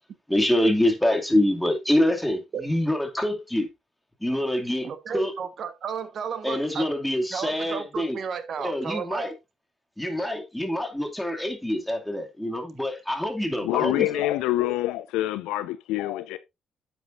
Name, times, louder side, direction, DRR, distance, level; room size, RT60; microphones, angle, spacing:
voice 1, 0.3-3.7 4.2-5.3 6.4-8.2 8.6-9.3 10.0-14.1, left 1 dB, 5° left, 2.5 m, -25 dB
voice 2, 4.8-6.9 7.3-9.3, right 7 dB, 55° right, 1.3 m, -33 dB
voice 3, 13.6-16.4, left 15 dB, 75° left, 0.4 m, -26 dB
9.7 x 8.0 x 2.6 m
hypercardioid pair, 50°, 0 cm